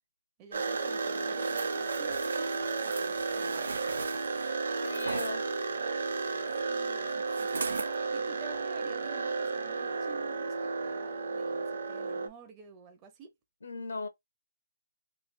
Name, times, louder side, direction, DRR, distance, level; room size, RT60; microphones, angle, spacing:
voice 1, 0.4-3.8 6.6-13.3, right 5 dB, 15° right, 0.7 m, -52 dB
sound 1, 0.5-12.3, right 4 dB, 60° right, 1.0 m, -33 dB
sound 2, 1.3-5.3 7.3-7.9 8.5-8.6, right 4 dB, 80° right, 0.7 m, -40 dB
voice 2, 4.8-5.8 6.3-6.7 13.6-14.1, left 3 dB, 80° left, 1.1 m, -40 dB
3.3 x 2.6 x 2.3 m
hypercardioid pair, 170°, 0 cm